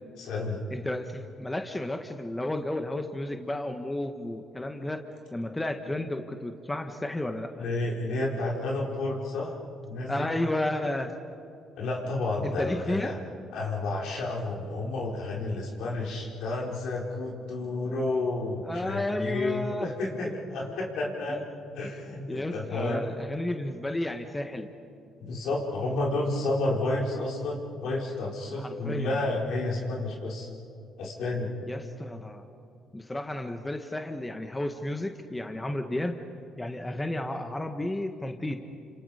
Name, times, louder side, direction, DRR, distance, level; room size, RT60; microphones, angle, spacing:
voice 1, 0.2-0.6 7.6-9.6 9.9-10.3 11.8-13.1 13.5-21.4 21.7-23.0 25.2-30.5 31.0-31.5, left 2 dB, 75° left, -2 dB, 4.9 m, -31 dB
voice 2, 0.7-5.0 5.3-7.5 10.1-11.1 12.4-13.2 18.6-19.9 21.3-21.4 22.3-24.7 28.6-29.1 31.7-32.4 32.9-36.2 36.6-38.6, left 1 dB, 15° left, 5 dB, 1.6 m, -32 dB
29.5 x 27.0 x 5.2 m, 2.7 s
supercardioid pair, 80°, 0 cm